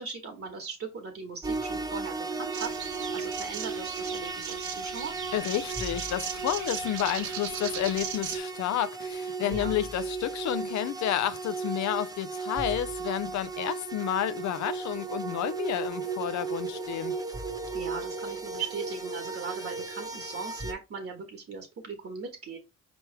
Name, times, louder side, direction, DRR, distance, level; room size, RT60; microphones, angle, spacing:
voice 1, 0.0-2.7 3.1-5.1 9.4-9.8 17.7-22.6, right 5 dB, 50° right, 1.3 m, -39 dB
sound 1, 1.4-20.7, right 4 dB, 10° right, 1.0 m, -35 dB
sound 2, 2.5-8.4, right 9 dB, 70° right, 0.7 m, -38 dB
voice 2, 5.3-17.1, left 11 dB, 70° left, 0.6 m, -30 dB
4.7 x 3.1 x 3.1 m
cardioid pair, 90°, 30 cm